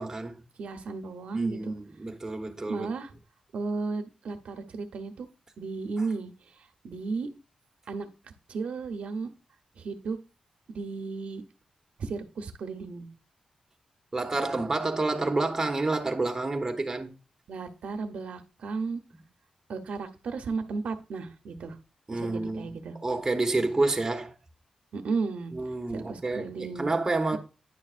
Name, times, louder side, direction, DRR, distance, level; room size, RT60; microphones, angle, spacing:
voice 1, 0.0-0.4 1.3-2.9 14.1-17.1 22.1-22.7 23.0-24.3 25.5-27.4, right 2 dB, 20° right, 1.1 m, -29 dB
voice 2, 0.6-1.7 2.7-3.1 3.5-5.3 5.6-7.3 7.9-8.1 8.5-9.3 9.8-10.2 10.7-11.4 12.0-13.1 17.5-19.0 19.7-21.8 22.1-23.0 24.9-25.5 25.9-26.9 27.3-27.4, right 4 dB, 75° right, 0.8 m, -34 dB
9.9 x 6.2 x 2.5 m
wide cardioid pair, 110°, 2 cm